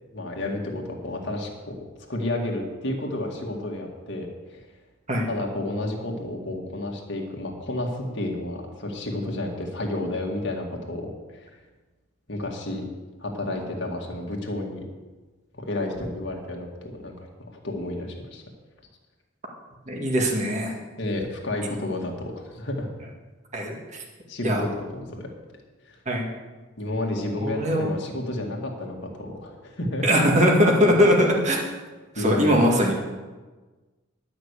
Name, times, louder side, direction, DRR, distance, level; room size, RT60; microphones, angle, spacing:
voice 1, 0.1-1.8 2.1-4.6 5.3-11.5 12.3-12.8 13.2-14.8 15.5-18.4 21.0-22.9 24.3-25.3 25.8-26.0 26.8-30.1 32.2-32.6, left 1 dB, 55° left, 0 dB, 2.0 m, -31 dB
voice 2, 19.9-20.7 23.5-23.8 24.4-24.6 26.1-26.3 27.4-27.9 30.0-31.6 32.2-32.9, equal, 35° right, 0 dB, 1.9 m, -20 dB
12.0 x 6.1 x 8.2 m, 1.3 s
head